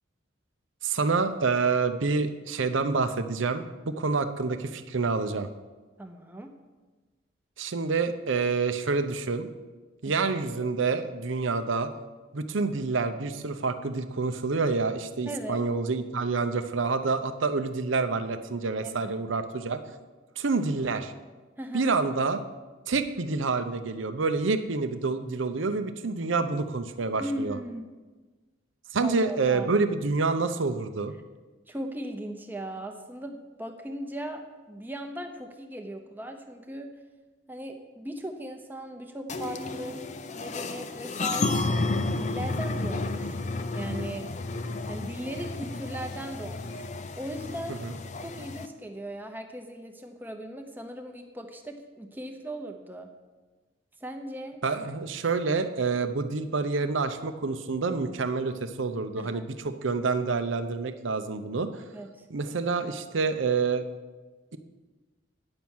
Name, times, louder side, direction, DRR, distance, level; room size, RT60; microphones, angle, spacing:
voice 1, 0.8-5.5 7.6-9.5 10.0-11.9 12.3-19.8 20.4-21.1 21.7-22.4 22.9-27.6 28.9-31.1 44.7-44.8 47.8-47.9 54.6-61.8 62.3-63.8, right 4 dB, 75° right, 9 dB, 0.7 m, -27 dB
voice 2, 6.0-6.5 10.0-10.3 15.3-15.7 18.8-19.1 21.6-21.9 27.2-27.8 29.0-29.7 31.7-36.9 37.5-40.0 40.3-41.8 42.1-43.4 43.7-44.3 44.9-46.9 47.2-47.8 48.2-53.1 54.0-54.6 59.2-59.4 61.9-62.3, right 1 dB, 10° right, 4 dB, 0.8 m, -38 dB
sound 1, 39.3-48.7, left 3 dB, 35° left, 0.5 m, -32 dB
9.8 x 6.1 x 7.2 m, 1.3 s
head